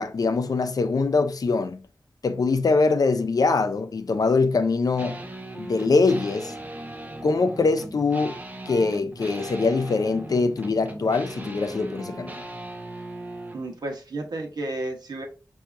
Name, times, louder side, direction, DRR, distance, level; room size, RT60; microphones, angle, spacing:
voice 1, 0.0-1.8 2.2-5.2 5.6-6.5 7.2-8.4 8.7-12.5, left 4 dB, 65° left, 0.5 m, -23 dB
sound 1, 5.0-13.7, right 1 dB, 25° right, 0.6 m, -38 dB
voice 2, 13.5-15.3, right 2 dB, 85° right, 1.0 m, -32 dB
5.7 x 2.7 x 2.5 m
wide cardioid pair, 100°, 7 cm